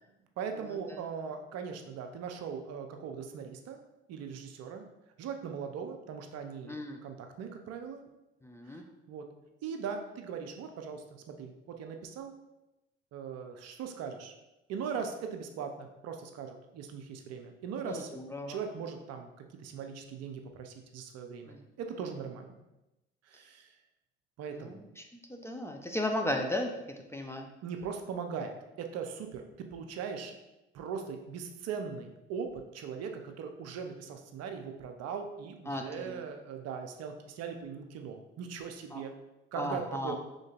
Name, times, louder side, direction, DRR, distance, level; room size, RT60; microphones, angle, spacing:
voice 1, 0.4-3.8 4.1-4.9 5.2-8.0 8.7-8.8 9.1-9.2 9.6-12.3 13.1-14.3 14.7-18.2 18.5-22.6 23.3-23.7 24.4-24.8 27.6-29.4 29.7-30.3 30.7-39.1 39.5-40.2, right 6 dB, 60° right, 5 dB, 0.6 m, -40 dB
voice 2, 6.7-7.0 8.4-8.8 17.8-18.6 21.5-21.6 24.5-24.8 25.3-26.7 27.1-27.5 35.7-36.2 38.9-39.0 39.6-40.2, left 1 dB, 10° left, 3 dB, 0.5 m, -35 dB
5.1 x 3.7 x 2.4 m, 0.95 s
hypercardioid pair, 60°, 29 cm